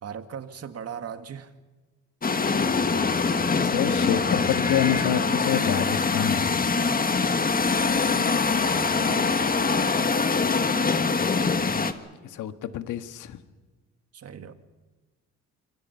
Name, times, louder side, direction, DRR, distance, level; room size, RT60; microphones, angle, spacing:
voice 1, 0.0-1.5 8.1-10.1 14.1-14.5, right 7 dB, 55° right, 1.9 m, -39 dB
sound 1, 2.2-11.9, left 4 dB, 30° left, 1.6 m, -23 dB
voice 2, 3.3-6.6 12.2-13.4, left 10 dB, 80° left, 1.6 m, -28 dB
26.5 x 24.5 x 5.7 m
cardioid pair, 90°, 30 cm